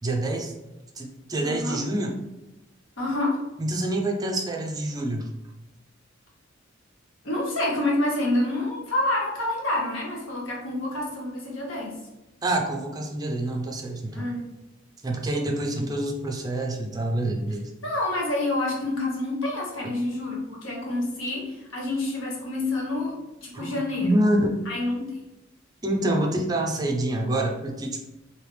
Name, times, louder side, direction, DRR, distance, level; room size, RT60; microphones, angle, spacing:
voice 1, 0.0-0.6 1.0-2.1 3.6-5.3 12.4-14.3 15.0-17.7 19.8-19.9 23.5-24.5 25.8-28.0, right 1 dB, 20° right, 2 dB, 0.5 m, -27 dB
voice 2, 1.4-1.8 3.0-3.4 7.2-12.0 14.1-14.4 17.8-24.1 24.7-25.2, left 2 dB, 85° left, -2 dB, 1.0 m, -28 dB
3.3 x 2.8 x 3.2 m, 0.97 s
head